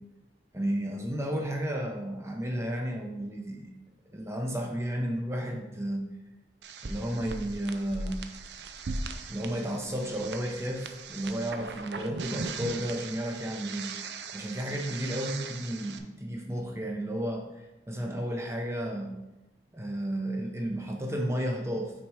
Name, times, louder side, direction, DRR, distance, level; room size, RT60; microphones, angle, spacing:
voice 1, 0.5-3.7 4.1-6.0 6.8-8.2 9.3-19.2 19.7-21.9, equal, 15° right, 1 dB, 0.7 m, -33 dB
sound 1, 6.6-16.0, right 4 dB, 70° right, 0.5 m, -39 dB
6.2 x 4.2 x 4.8 m, 1.0 s
head